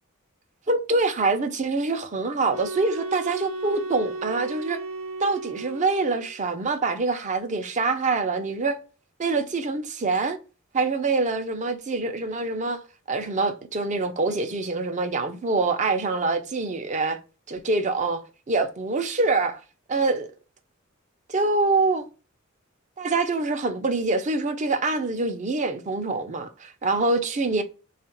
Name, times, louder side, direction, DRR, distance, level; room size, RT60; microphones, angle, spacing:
voice 1, 0.7-4.8 5.2-8.8 9.2-10.4 10.7-17.2 17.5-19.6 19.9-20.3 21.3-22.1 23.0-27.6, right 3 dB, 35° right, 0.5 m, -25 dB
sound 1, 2.5-6.4, right 2 dB, 80° right, 0.6 m, -34 dB
3.7 x 2.4 x 4.2 m
head